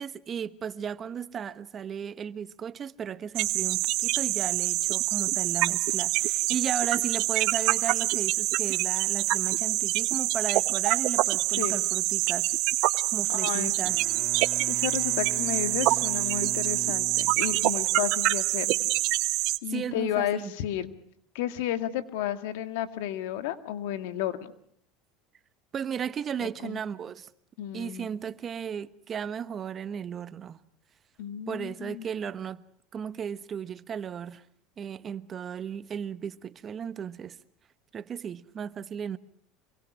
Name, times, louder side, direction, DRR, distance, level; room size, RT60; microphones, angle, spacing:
voice 1, 0.0-12.5 13.1-14.0 19.7-20.5 25.7-27.3 27.7-30.6 31.5-32.6 32.9-34.4 34.8-37.4 37.9-39.2, right 8 dB, 35° right, 1.1 m, -35 dB
sound 1, 3.4-19.6, right 19 dB, 60° right, 1.1 m, -26 dB
voice 2, 13.3-13.7 14.7-18.9 19.6-20.9 21.3-24.5 26.4-26.8 27.6-28.1 31.2-32.1, left 12 dB, 75° left, 2.0 m, -32 dB
Bowed string instrument, 13.7-18.1, right 1 dB, 20° right, 2.1 m, -43 dB
27.0 x 23.0 x 6.3 m
supercardioid pair, 105°, 0 cm